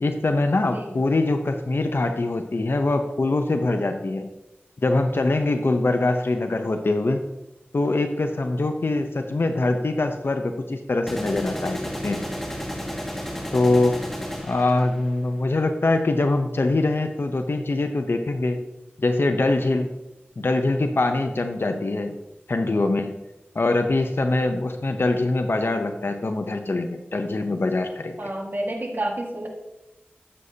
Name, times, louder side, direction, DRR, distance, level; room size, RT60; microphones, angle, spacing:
voice 1, 0.0-4.3 4.8-7.2 7.7-12.2 13.5-14.0 14.4-18.6 19.0-19.9 20.4-22.2 22.5-23.1 23.5-28.2, left 2 dB, 70° left, 6 dB, 0.7 m, -23 dB
sound 1, 6.3-6.5 11.1-15.2, equal, 5° left, 2.0 m, -32 dB
voice 2, 28.2-29.5, right 1 dB, 55° right, 1 dB, 1.8 m, -29 dB
12.5 x 8.0 x 2.8 m, 0.96 s
wide cardioid pair, 45°, 4 cm